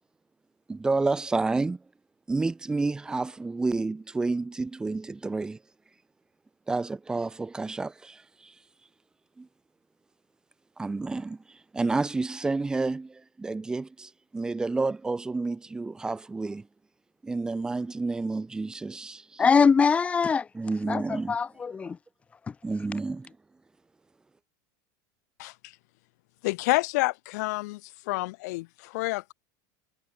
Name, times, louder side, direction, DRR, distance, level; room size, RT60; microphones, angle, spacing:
voice 1, 0.7-1.8 2.3-5.6 6.7-8.5 9.4-9.5 10.8-16.7 17.2-19.4 20.5-21.4 22.6-23.3, right 3 dB, 5° right, 2.7 m, -30 dB
voice 2, 19.4-20.5 20.9-22.0, left 5 dB, 10° left, 2.8 m, -22 dB
voice 3, 25.4-25.7 26.4-27.8 28.1-29.3, left 22 dB, 60° left, 2.2 m, -28 dB
supercardioid pair, 180°, 10 cm